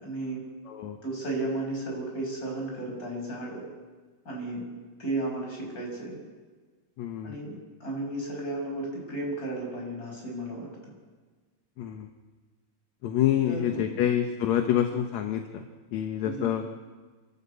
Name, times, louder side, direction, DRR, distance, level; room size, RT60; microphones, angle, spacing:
voice 1, 0.0-0.4 1.0-3.6 4.3-4.6 5.0-6.2 7.2-10.9 13.4-14.0 16.2-16.5, right 2 dB, 25° left, -1 dB, 7.1 m, -34 dB
voice 2, 0.7-1.0 7.0-7.4 11.8-12.1 13.0-15.6 15.9-16.6, left 10 dB, 70° left, 5 dB, 2.3 m, -27 dB
28.5 x 12.5 x 8.4 m, 1.4 s
omnidirectional pair, 3.5 m